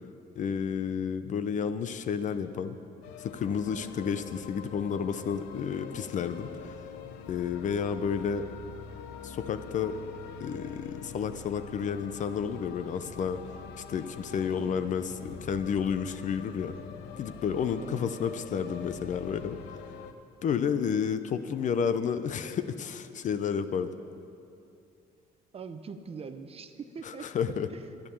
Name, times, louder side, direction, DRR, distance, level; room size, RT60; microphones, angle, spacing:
voice 1, 0.4-2.8 3.2-6.8 7.3-8.5 9.2-10.0 10.4-13.4 13.9-16.7 17.2-19.6 20.4-23.9 27.0-27.7, left 7 dB, 45° left, 11 dB, 0.6 m, -31 dB
sound 1, 3.0-20.1, left 6 dB, 90° left, 0.8 m, -45 dB
voice 2, 25.5-28.0, right 5 dB, 35° right, 9 dB, 0.8 m, -43 dB
11.5 x 10.5 x 7.1 m, 2.6 s
cardioid pair, 110°, 17 cm